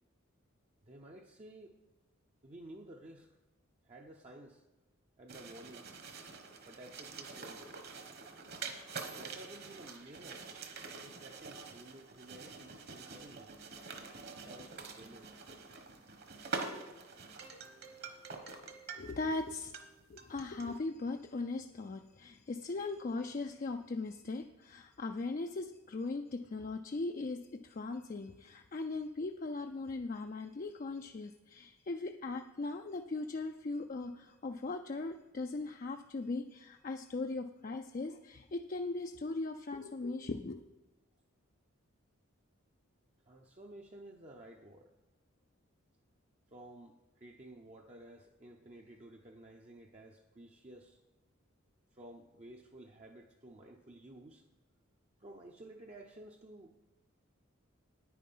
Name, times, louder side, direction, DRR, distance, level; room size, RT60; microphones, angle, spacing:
voice 1, 0.8-1.8 2.4-3.4 3.8-4.6 5.2-6.0 6.6-7.7 9.2-10.5 10.9-13.6 14.4-15.3 43.2-44.9 46.5-51.0 51.9-54.5 55.2-56.8, right 1 dB, 30° right, 1 dB, 0.6 m, -53 dB
sound 1, 5.3-19.4 19.6-20.8, right 4 dB, 50° right, 1.2 m, -46 dB
voice 2, 18.9-19.7 20.1-40.6, left 3 dB, 40° left, 5 dB, 0.4 m, -39 dB
9.5 x 9.4 x 5.5 m, 1.0 s
head